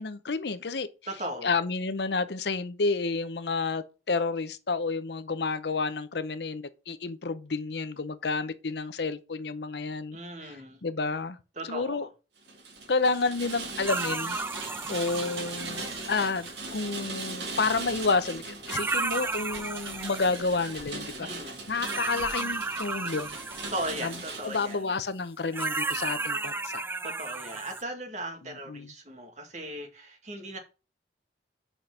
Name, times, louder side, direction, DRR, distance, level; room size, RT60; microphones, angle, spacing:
voice 1, 0.0-0.9 1.4-11.4 11.7-12.1 12.9-14.4 14.9-21.3 21.7-23.4 24.0-24.1 24.4-26.8 28.7-28.9, left 4 dB, 70° left, 0.7 m, -30 dB
voice 2, 1.1-1.5 10.1-10.8 11.6-12.1 21.2-21.6 23.7-24.8 27.0-30.6, right 1 dB, 40° right, 1.9 m, -37 dB
Rain, 12.4-24.8, right 3 dB, 75° right, 2.2 m, -39 dB
sound 1, 13.9-16.7 18.3-18.4 18.7-20.8 21.8-24.7 25.5-27.8, right 3 dB, 15° right, 0.3 m, -34 dB
6.2 x 5.1 x 5.8 m
head